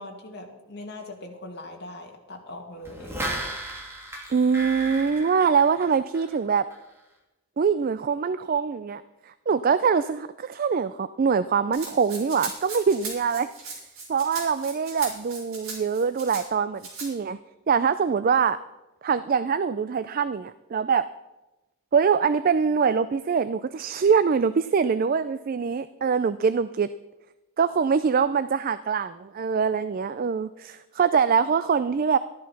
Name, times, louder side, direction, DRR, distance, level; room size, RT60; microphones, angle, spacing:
voice 1, 0.0-3.3, left 1 dB, 50° left, 1 dB, 2.2 m, -41 dB
sound 1, 2.8-6.4 6.7-6.8, right 1 dB, 10° right, 2.5 m, -35 dB
voice 2, 4.3-6.6 7.6-13.5 14.1-17.4 17.7-18.6 19.0-21.1 21.9-26.9 27.6-32.2, right 6 dB, 40° right, 13 dB, 0.3 m, -23 dB
Rattle (instrument), 11.7-16.4 16.8-17.1, right 4 dB, 65° right, 4.5 m, -38 dB
13.5 x 11.0 x 5.9 m, 1.0 s
head